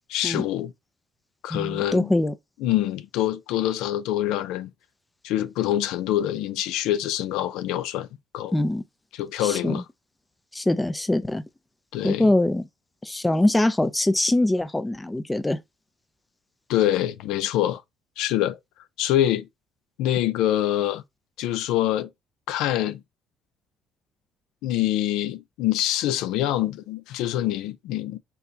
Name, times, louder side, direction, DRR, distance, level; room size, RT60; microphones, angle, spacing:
voice 1, 0.1-0.7 1.4-2.1 2.6-4.7 5.2-8.1 8.3-8.5 9.1-9.8 11.9-12.3 16.7-17.8 18.2-18.6 19.0-19.5 20.0-21.0 21.4-22.1 22.5-23.0 24.6-28.2, left 13 dB, 85° left, 0.5 m, -25 dB
voice 2, 1.5-2.3 8.5-8.8 9.4-9.8 10.5-11.4 12.0-12.7 13.0-15.6, left 1 dB, 10° left, 0.4 m, -23 dB
4.6 x 3.1 x 2.7 m
cardioid pair, 145°, 0 cm